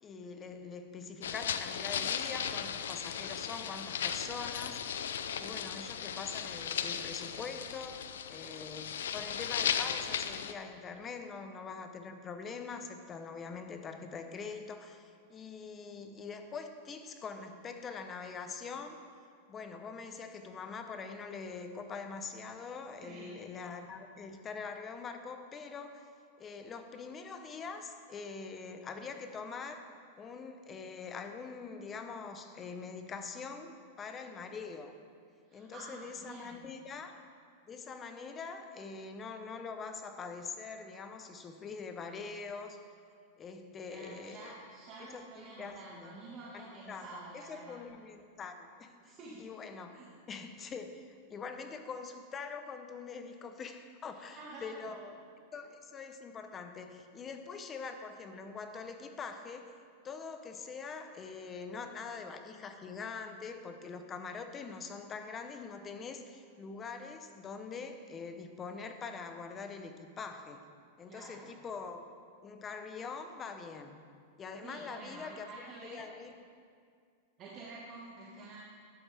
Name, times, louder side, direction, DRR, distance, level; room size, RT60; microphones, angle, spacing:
voice 1, 0.0-4.9 5.4-8.0 8.3-19.0 19.5-26.1 26.4-29.8 30.2-35.0 35.5-37.2 37.7-42.8 43.4-44.5 45.0-46.2 46.5-50.0 50.3-55.2 55.5-59.7 60.0-70.6 71.0-72.0 72.4-74.0 74.4-76.3, left 5 dB, 25° left, 7 dB, 0.9 m, -44 dB
sound 1, 1.2-10.5, left 8 dB, 85° left, 0.5 m, -36 dB
voice 2, 23.0-23.5 35.4-36.7 43.9-47.8 49.0-49.4 49.9-50.0 54.1-55.0 71.1-71.5 74.6-76.1 77.4-78.6, right 3 dB, 40° right, -5 dB, 1.9 m, -49 dB
12.0 x 10.5 x 3.5 m, 2.2 s
hypercardioid pair, 125°, 0 cm